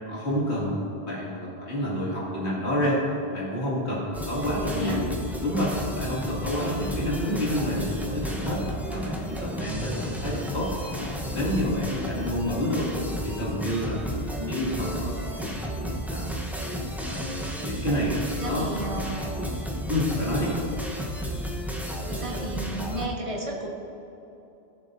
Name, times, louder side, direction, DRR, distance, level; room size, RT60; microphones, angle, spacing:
voice 1, 0.1-3.0 3.3-5.1 5.4-8.6 8.9-12.9 13.2-15.5 16.1-16.4 17.1-18.7 19.9-20.6, equal, 85° left, -6 dB, 2.6 m, -29 dB
sound 1, 4.1-23.1, equal, ahead, 0.9 m, -32 dB
voice 2, 4.7-5.1 14.3-14.9 18.4-19.4 21.8-23.7, right 1 dB, 30° right, -3 dB, 1.7 m, -34 dB
18.0 x 7.3 x 2.7 m, 2.9 s
omnidirectional pair, 1.1 m